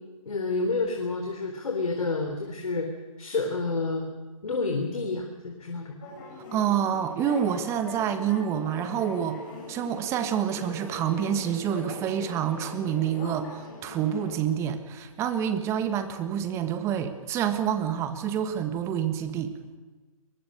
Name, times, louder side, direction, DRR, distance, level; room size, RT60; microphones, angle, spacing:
voice 1, 0.3-2.9 3.2-4.1 4.4-6.0, left 3 dB, 75° left, 2 dB, 3.9 m, -29 dB
sound 1, 6.0-14.4, left 2 dB, 35° left, 6.6 m, -42 dB
voice 2, 6.5-9.4 9.7-19.5, right 9 dB, 15° right, 9 dB, 1.5 m, -27 dB
23.0 x 20.5 x 6.6 m, 1.3 s
hypercardioid pair, 150°, 18 cm